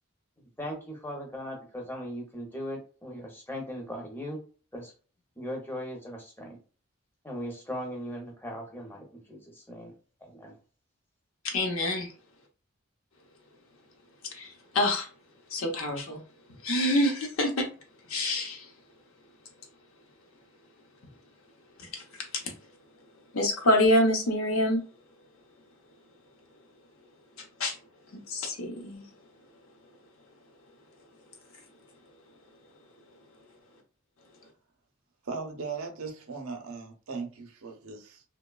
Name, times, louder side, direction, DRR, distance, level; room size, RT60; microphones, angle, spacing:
voice 1, 0.6-4.4 4.7-4.9 5.4-6.6 7.2-9.9 10.2-10.5, equal, 10° left, 0.7 m, -38 dB
voice 2, 11.4-12.1 14.3-14.5 14.7-15.1 15.5-16.2 16.6-17.7 18.1-18.6 21.9-22.0 23.3-24.8 27.6-27.7 28.3-29.0, left 1 dB, 75° left, 0.7 m, -26 dB
voice 3, 35.2-38.2, right 4 dB, 80° right, 0.6 m, -38 dB
3.0 x 2.2 x 2.3 m
head